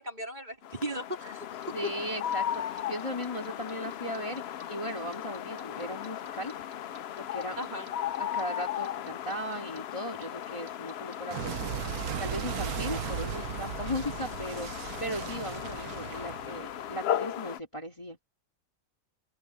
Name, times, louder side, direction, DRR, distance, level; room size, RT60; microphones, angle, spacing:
voice 1, 0.0-1.9 7.6-7.9, equal, 30° right, 4.0 m, -37 dB
sound 1, 0.6-17.6, left 10 dB, 65° left, 0.6 m, -37 dB
Clock, 1.6-4.6 4.9-7.9 8.1-17.0, right 10 dB, 80° right, 1.3 m, -37 dB
voice 2, 1.7-6.5 7.2-7.6 8.2-11.6 12.2-18.2, equal, 20° left, 2.1 m, -37 dB
omnidirectional pair, 1.6 m